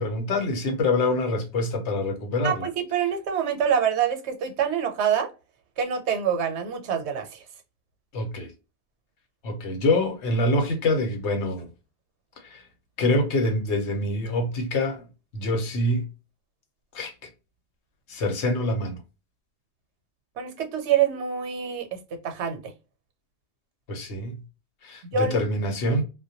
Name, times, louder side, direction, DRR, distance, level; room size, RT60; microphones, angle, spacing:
voice 1, 0.0-2.7 8.1-8.5 9.4-11.7 12.4-12.6 13.0-15.0 15.3-16.1 16.9-17.1 18.1-19.0 23.9-24.4 24.8-26.0, left 2 dB, 90° left, 1.0 m, -25 dB
voice 2, 2.4-5.3 5.8-7.4 20.4-22.0 22.2-22.7 25.1-25.4, right 7 dB, 80° right, 0.9 m, -26 dB
2.2 x 2.1 x 2.6 m
omnidirectional pair, 1.1 m